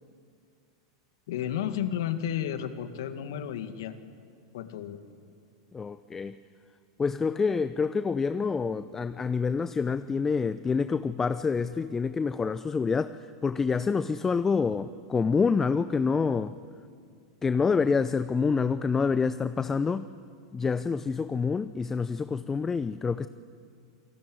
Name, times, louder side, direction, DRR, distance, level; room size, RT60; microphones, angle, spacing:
voice 1, 1.3-4.0 4.5-5.0, left 10 dB, 70° left, 9 dB, 2.0 m, -32 dB
voice 2, 5.7-6.4 7.0-16.6 17.4-20.1 20.5-23.3, left 5 dB, 20° left, 13 dB, 0.7 m, -27 dB
28.5 x 19.5 x 9.3 m, 2.3 s
hypercardioid pair, 100°, 2 cm